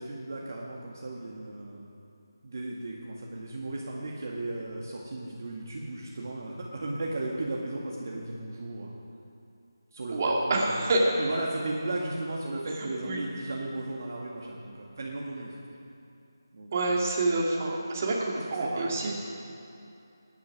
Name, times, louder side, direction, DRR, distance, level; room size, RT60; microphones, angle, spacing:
voice 1, 0.0-1.9 2.4-8.9 9.9-10.8 11.2-15.6 16.5-16.9 18.3-19.1, right 2 dB, 50° right, -3 dB, 1.8 m, -35 dB
voice 2, 10.1-11.0 12.8-13.2 16.7-19.1, right 2 dB, 35° right, -2 dB, 2.3 m, -27 dB
16.5 x 10.5 x 6.0 m, 2.6 s
figure-of-eight pair, 165°, 2 cm